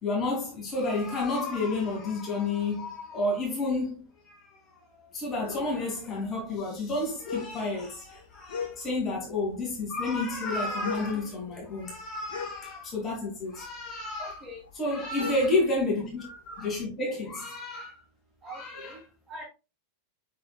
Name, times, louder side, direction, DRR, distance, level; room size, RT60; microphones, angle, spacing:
voice 1, 0.0-3.9 4.3-4.5 4.9-14.3 14.8-18.0 18.5-18.9, left 2 dB, 25° left, 2.6 m, -30 dB
sound 1, 5.4-9.2 9.5-13.3 13.6-16.8, left 6 dB, 65° left, 1.3 m, -40 dB
voice 2, 14.2-14.6 15.0-15.1 18.4-19.0 19.3-19.4, equal, 20° right, 2.9 m, -43 dB
7.4 x 6.2 x 2.4 m
figure-of-eight pair, 90°, 0 cm